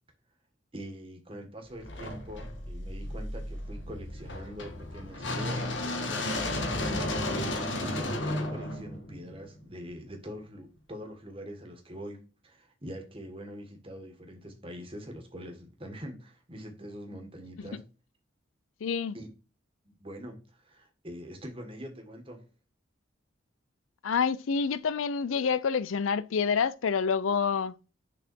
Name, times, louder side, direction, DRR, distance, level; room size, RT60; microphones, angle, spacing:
voice 1, 0.7-5.8 6.1-17.8 19.1-19.3 20.0-22.4, equal, 25° right, 1.7 m, -44 dB
sound 1, 1.8-9.9, left 1 dB, 65° left, 1.4 m, -33 dB
voice 2, 18.8-19.2 24.0-27.7, left 6 dB, 85° left, 0.4 m, -27 dB
6.7 x 4.2 x 4.6 m
head